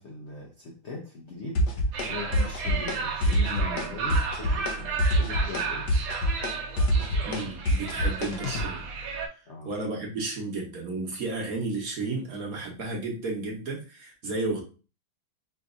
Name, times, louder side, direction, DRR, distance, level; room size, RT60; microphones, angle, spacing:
voice 1, 0.0-5.9 9.5-9.7, left 3 dB, 85° left, 0.6 m, -40 dB
sound 1, 1.6-2.1 2.3-3.0 3.2-3.9 4.1-4.7 5.0-8.7, equal, 65° left, 1.2 m, -25 dB
sound 2, 1.9-9.3, right 5 dB, 75° right, 1.5 m, -33 dB
voice 2, 7.2-8.9 9.6-14.6, right 3 dB, 55° right, 1.2 m, -32 dB
5.0 x 2.8 x 2.5 m
omnidirectional pair, 2.2 m